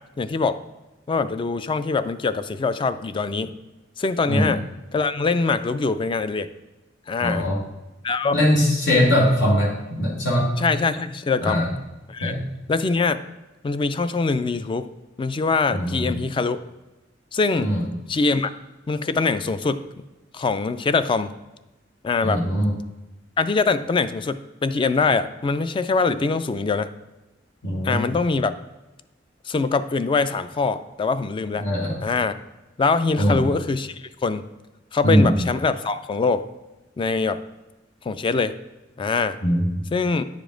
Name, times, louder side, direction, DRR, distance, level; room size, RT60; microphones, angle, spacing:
voice 1, 0.2-0.6 1.1-3.5 4.0-4.6 4.9-6.5 7.1-7.5 8.0-8.4 10.6-11.6 12.1-12.3 12.7-13.2 13.6-14.9 15.2-16.6 17.3-17.8 18.1-18.5 18.9-19.9 20.3-21.3 22.0-22.4 23.4-26.9 27.8-28.5 29.5-31.7 32.0-32.3 32.8-34.4 34.9-36.4 37.0-37.4 38.0-38.5 39.0-39.4 39.9-40.2, left 4 dB, 25° left, 12 dB, 0.3 m, -23 dB
voice 2, 7.2-7.6 8.3-10.5 11.4-11.7 12.2-12.4 15.7-16.1 17.6-17.8 22.2-22.7 27.6-28.0 31.6-31.9 33.2-33.4 35.0-35.3 39.4-39.6, equal, 85° left, -3 dB, 1.8 m, -21 dB
9.4 x 5.1 x 3.8 m, 1.0 s
head